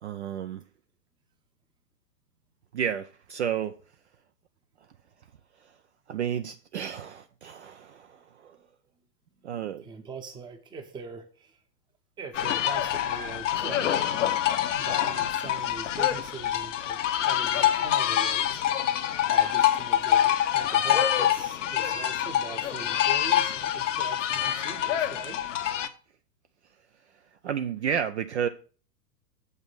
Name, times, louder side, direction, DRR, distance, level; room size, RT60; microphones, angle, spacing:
voice 1, 0.0-0.6 2.7-3.8 5.6-5.7 6.1-8.6 9.4-9.8 27.4-28.5, right 8 dB, 45° right, 0.5 m, -31 dB
voice 2, 9.8-11.6 12.2-13.9 14.3-14.4 14.7-18.6 19.3-25.5, right 5 dB, 10° right, 0.8 m, -42 dB
sound 1, 12.3-25.9, left 11 dB, 50° left, 0.8 m, -26 dB
7.8 x 5.5 x 5.9 m
figure-of-eight pair, 110°, 50 cm